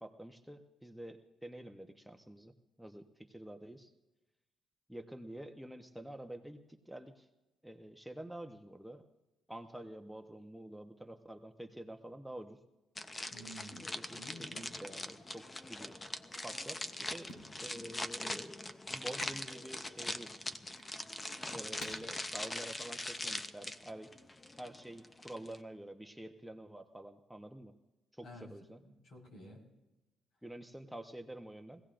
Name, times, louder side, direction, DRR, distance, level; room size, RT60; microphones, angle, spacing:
voice 1, 0.0-2.5 2.8-3.9 4.9-7.3 7.6-9.1 9.5-12.6 13.9-16.0 16.4-17.3 17.6-18.5 18.9-20.3 21.5-24.1 24.6-27.7 28.1-28.8 30.4-31.8, right 1 dB, 5° right, 5 dB, 0.9 m, -48 dB
sound 1, 13.0-25.6, left 2 dB, 20° left, 0.8 m, -42 dB
voice 2, 13.3-14.7 28.2-28.5 28.8-29.6, equal, 65° left, -1 dB, 4.8 m, -52 dB
sound 2, 14.7-23.5, left 1 dB, 85° left, 4.1 m, -56 dB
23.0 x 16.5 x 2.6 m, 1.0 s
cardioid pair, 90°, 0 cm